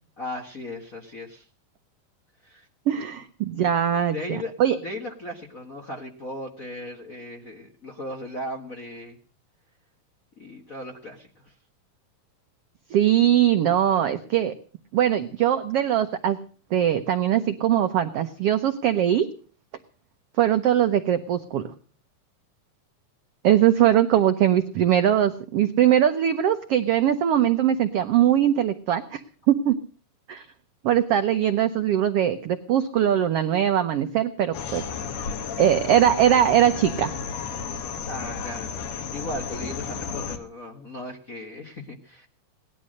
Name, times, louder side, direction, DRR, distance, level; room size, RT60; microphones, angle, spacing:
voice 1, 0.2-1.5 2.4-2.7 3.5-3.7 4.1-9.2 10.4-11.5 38.0-42.3, left 1 dB, 40° left, 0 dB, 1.2 m, -37 dB
voice 2, 2.9-4.8 12.9-14.5 14.9-16.4 16.7-19.3 20.4-21.7 23.4-29.2 29.5-29.7 30.3-30.5 30.8-34.8 35.6-37.1, right 10 dB, 80° right, 9 dB, 1.3 m, -21 dB
sound 1, 34.5-40.4, left 6 dB, 60° left, 2.2 m, -33 dB
18.5 x 11.5 x 6.4 m, 0.42 s
omnidirectional pair, 3.8 m